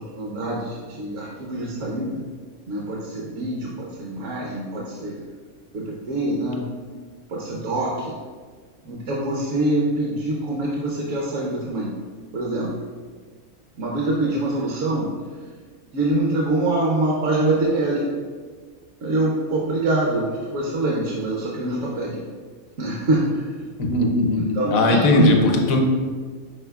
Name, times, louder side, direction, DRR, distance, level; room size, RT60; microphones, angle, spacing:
voice 1, 0.0-2.2 2.7-5.2 5.7-6.7 7.3-8.1 8.8-11.9 12.3-12.7 13.8-15.1 15.9-18.0 19.0-22.2 22.8-23.5 24.3-25.3, right 2 dB, 65° right, -3 dB, 1.0 m, -24 dB
voice 2, 23.8-25.8, left 2 dB, 75° left, 2 dB, 1.0 m, -19 dB
5.5 x 4.3 x 2.3 m, 1.5 s
omnidirectional pair, 1.5 m